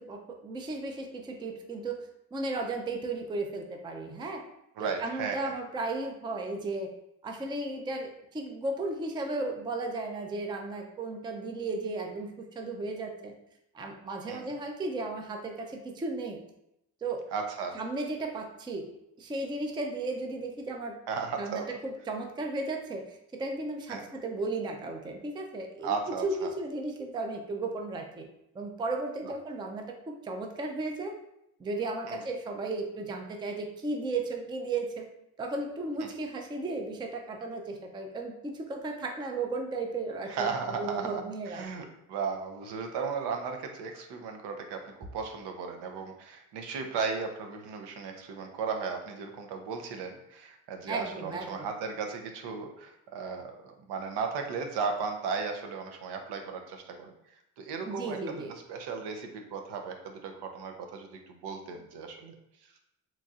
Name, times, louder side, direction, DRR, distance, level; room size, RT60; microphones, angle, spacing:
voice 1, 0.0-2.0 2.3-4.4 4.8-6.9 7.2-13.3 13.7-16.4 17.0-17.2 17.7-18.9 19.2-21.0 21.4-26.0 26.2-28.2 28.5-31.1 31.6-35.0 35.4-41.6 50.9-51.7 57.8-58.5, right 2 dB, 10° right, 3 dB, 0.4 m, -35 dB
voice 2, 4.8-5.5 14.3-14.5 17.3-17.8 21.1-21.7 23.9-24.1 25.8-26.5 29.2-29.3 32.1-32.2 36.0-36.1 40.3-57.1 57.6-62.3, right 5 dB, 75° right, 4 dB, 0.7 m, -36 dB
4.0 x 3.0 x 2.4 m, 0.82 s
cardioid pair, 110°, 40 cm